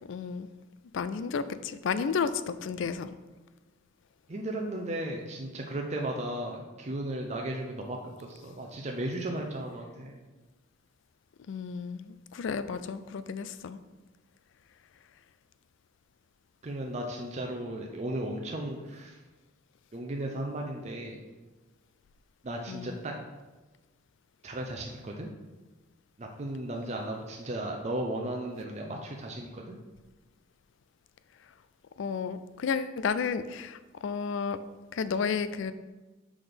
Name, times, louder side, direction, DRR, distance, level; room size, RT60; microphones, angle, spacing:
voice 1, 0.0-0.5 0.9-3.1 11.5-13.8 22.7-23.0 32.0-34.6 34.9-35.7, left 6 dB, 65° left, 13 dB, 0.4 m, -32 dB
voice 2, 4.3-10.2 16.6-19.2 19.9-21.2 22.4-23.2 24.4-25.3 26.2-29.8, right 1 dB, 35° right, 1 dB, 0.5 m, -35 dB
6.1 x 3.9 x 5.0 m, 1.2 s
head